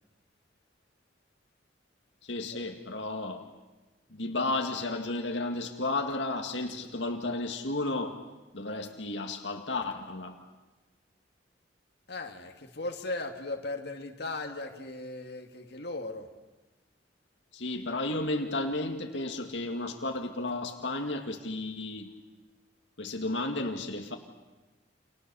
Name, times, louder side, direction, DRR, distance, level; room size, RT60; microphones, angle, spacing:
voice 1, 2.2-3.4 4.1-8.2 8.5-10.4 17.5-22.2 23.0-24.2, left 2 dB, 80° left, 3 dB, 2.1 m, -33 dB
voice 2, 12.1-16.3, left 2 dB, 60° left, 3 dB, 2.3 m, -37 dB
29.5 x 26.5 x 7.0 m, 1.2 s
head